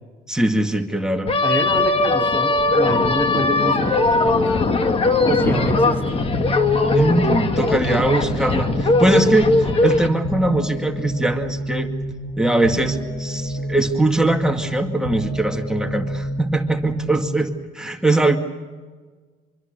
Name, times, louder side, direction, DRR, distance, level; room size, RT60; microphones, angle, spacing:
voice 1, 0.3-1.3 6.9-11.9 12.4-18.4, right 2 dB, 5° right, 3 dB, 2.1 m, -21 dB
sound 1, 1.3-10.1, left 3 dB, 35° left, 2.1 m, -19 dB
voice 2, 1.4-4.4 5.2-6.2, right 1 dB, 10° left, 3 dB, 3.7 m, -26 dB
sound 2, 5.4-17.4, right 1 dB, 90° left, 6.7 m, -28 dB
25.5 x 24.0 x 6.8 m, 1.4 s
cardioid pair, 110°, 17 cm